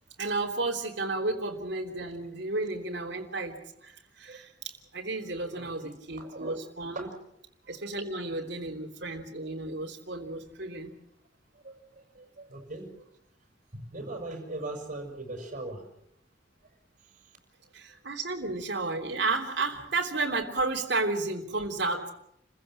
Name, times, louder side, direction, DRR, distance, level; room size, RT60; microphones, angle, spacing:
voice 1, 0.2-3.6 3.8-7.1 7.7-10.9 17.7-22.1, right 3 dB, 65° right, -1 dB, 3.3 m, -32 dB
voice 2, 5.0-6.6 6.9-7.2 7.6-7.8 11.6-13.0 13.7-15.9, right 2 dB, 45° right, 3 dB, 6.2 m, -41 dB
29.5 x 15.5 x 7.6 m, 0.77 s
head